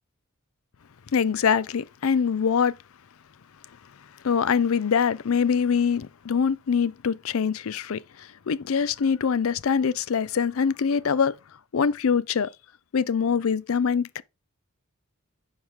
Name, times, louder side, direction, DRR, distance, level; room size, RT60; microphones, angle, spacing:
voice 1, 1.1-2.8 4.2-11.3 11.7-12.5 12.9-14.2, left 6 dB, 70° left, 0.5 m, -24 dB
10.5 x 4.8 x 3.7 m
head